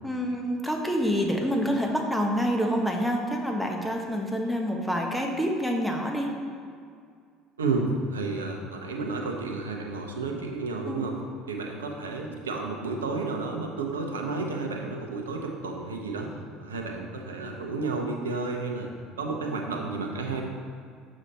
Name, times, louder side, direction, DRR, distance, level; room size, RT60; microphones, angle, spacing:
voice 1, 0.0-6.3 10.9-11.0, equal, 5° left, 1 dB, 1.3 m, -27 dB
voice 2, 7.6-11.2 11.5-16.3 16.6-18.9 19.2-20.4, right 3 dB, 90° right, 2 dB, 0.8 m, -31 dB
6.7 x 6.2 x 4.2 m, 2.2 s
hypercardioid pair, 70°, 0 cm